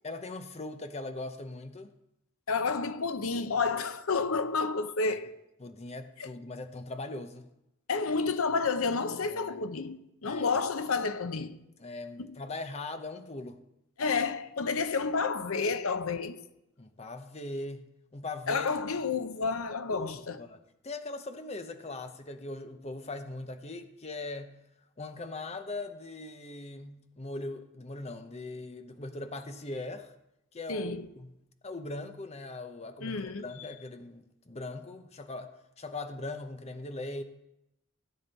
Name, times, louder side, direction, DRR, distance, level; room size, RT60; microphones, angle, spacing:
voice 1, 0.0-1.9 5.6-7.5 9.3-9.6 10.2-10.6 11.8-13.6 16.8-17.9 18.1-18.7 19.9-20.1 20.4-20.6 20.8-24.6 25.0-30.1 30.5-31.3 31.6-37.2, left 2 dB, 30° left, 0.7 m, -40 dB
voice 2, 2.5-5.4 6.2-6.3 7.9-11.6 12.2-12.4 14.0-16.4 18.5-20.4 30.7-31.1 33.0-33.7, left 4 dB, 70° left, 0.7 m, -30 dB
16.0 x 8.7 x 4.0 m
head